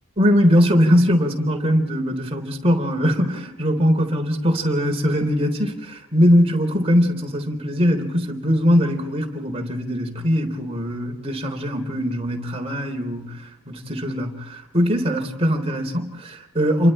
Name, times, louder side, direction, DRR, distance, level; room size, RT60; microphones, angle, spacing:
voice 1, 0.2-16.9, equal, 25° right, 3.7 m, -21 dB
29.5 x 24.0 x 4.4 m
head